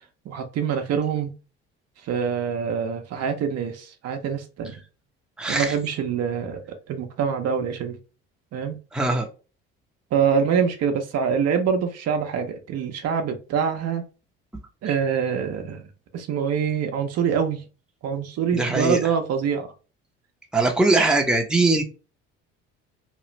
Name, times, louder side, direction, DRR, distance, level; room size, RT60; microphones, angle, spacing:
voice 1, 0.3-1.3 2.0-4.8 5.5-6.6 6.9-8.0 8.5-8.8 10.1-14.0 14.8-15.8 16.1-17.6 18.0-19.7, right 7 dB, 55° right, 0.7 m, -25 dB
voice 2, 5.4-5.7 8.9-9.3 18.5-19.1 20.5-21.8, right 2 dB, 5° right, 0.7 m, -21 dB
3.0 x 2.4 x 3.1 m
supercardioid pair, 75°, 30 cm